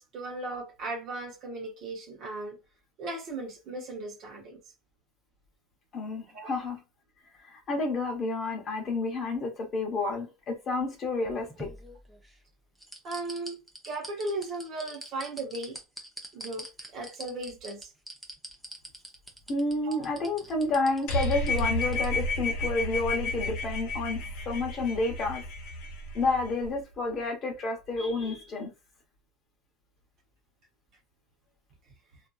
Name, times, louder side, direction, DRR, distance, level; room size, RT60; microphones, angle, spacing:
voice 1, 0.0-2.6 3.0-4.6 6.3-6.5 13.0-13.6 13.8-15.8 16.3-16.6 16.9-17.9 19.8-20.0, right 2 dB, 45° right, 0.8 m, -36 dB
voice 2, 5.9-6.8 7.4-11.7 19.5-25.4 26.1-28.7, left 3 dB, 30° left, 0.8 m, -30 dB
Enzo-cloche, 11.0-12.4 12.8-22.1 22.4-22.5, right 1 dB, 5° right, 0.6 m, -44 dB
sound 1, 21.1-26.7, left 1 dB, 65° left, 1.0 m, -31 dB
2.7 x 2.4 x 2.3 m
supercardioid pair, 140°, 0 cm